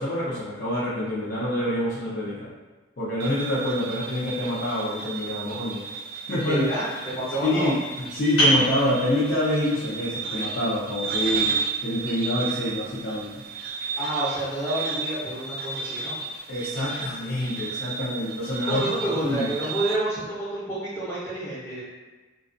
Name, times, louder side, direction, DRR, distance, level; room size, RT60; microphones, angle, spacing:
voice 1, 0.0-2.5 3.0-5.8 6.3-6.6 7.4-11.6 11.8-13.3 16.5-18.8 19.2-19.5, left 1 dB, 55° left, -10 dB, 0.6 m, -26 dB
sound 1, 3.2-20.0, right 5 dB, 50° right, 0.3 m, -33 dB
voice 2, 6.5-7.7 14.0-16.2 18.6-21.8, right 1 dB, 10° left, -11 dB, 0.7 m, -29 dB
sound 2, 8.4-13.7, right 1 dB, 85° left, 1.2 m, -29 dB
2.3 x 2.3 x 2.5 m, 1.2 s
head